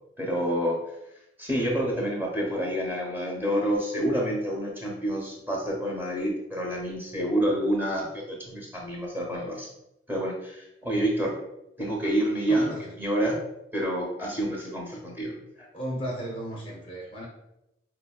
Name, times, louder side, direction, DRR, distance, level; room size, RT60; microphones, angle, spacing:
voice 1, 0.2-0.8 1.4-9.7 10.1-11.3 11.8-12.7 13.0-13.4 13.7-15.3, right 1 dB, 10° right, -2 dB, 0.7 m, -28 dB
voice 2, 12.5-12.9 15.7-17.3, equal, 30° left, -2 dB, 0.5 m, -34 dB
4.2 x 2.7 x 2.2 m, 0.87 s
head